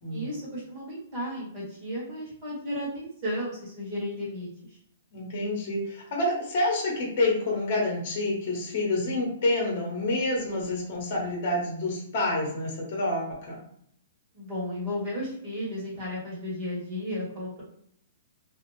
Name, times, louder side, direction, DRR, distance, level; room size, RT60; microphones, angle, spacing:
voice 1, 0.1-4.8 14.3-17.6, left 1 dB, 25° right, -7 dB, 1.4 m, -34 dB
voice 2, 5.1-13.5, left 2 dB, 35° left, -2 dB, 1.1 m, -28 dB
2.6 x 2.3 x 3.0 m, 0.66 s
hypercardioid pair, 175°, 0 cm